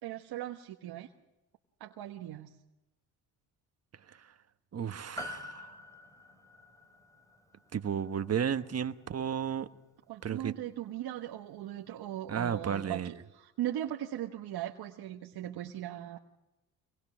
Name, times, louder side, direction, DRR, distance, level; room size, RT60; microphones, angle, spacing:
voice 1, 0.0-1.1 1.8-2.5 10.1-16.2, right 12 dB, 70° right, 1.3 m, -39 dB
voice 2, 4.7-5.7 7.7-9.7 10.2-10.5 12.3-13.1, right 8 dB, 40° right, 1.3 m, -33 dB
Piano, 5.2-9.8 10.0-10.1, left 1 dB, 10° left, 3.0 m, -47 dB
24.5 x 20.5 x 6.3 m
supercardioid pair, 75°, 40 cm